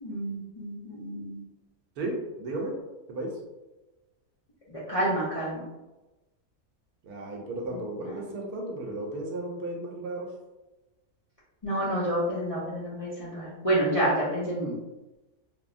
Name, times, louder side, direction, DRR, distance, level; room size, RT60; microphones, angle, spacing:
voice 1, 0.0-1.4 4.7-5.6 11.6-14.7, right 1 dB, 60° left, -9 dB, 0.3 m, -29 dB
voice 2, 2.0-2.8 3.1-3.4 7.0-10.3, right 1 dB, 80° right, 0 dB, 1.1 m, -34 dB
3.3 x 2.0 x 2.4 m, 1.1 s
omnidirectional pair, 1.6 m